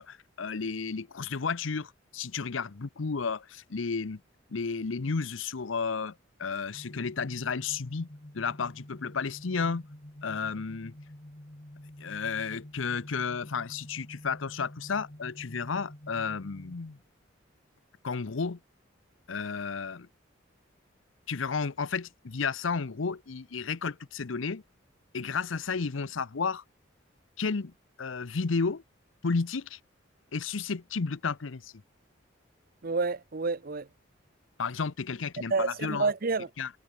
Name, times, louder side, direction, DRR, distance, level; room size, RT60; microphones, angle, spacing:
voice 1, 0.0-4.2 4.5-6.1 6.4-8.1 8.3-9.9 10.2-10.9 12.0-17.0 18.0-18.6 19.3-20.1 21.3-24.6 25.1-26.6 27.4-27.7 28.0-28.8 29.2-29.8 30.3-31.7 34.6-36.1 36.6-36.7, left 5 dB, 85° left, 0.7 m, -32 dB
sound 1, 6.7-16.7, left 1 dB, 35° left, 1.8 m, -48 dB
voice 2, 32.8-33.9 35.5-36.5, right 4 dB, 50° right, 0.7 m, -29 dB
head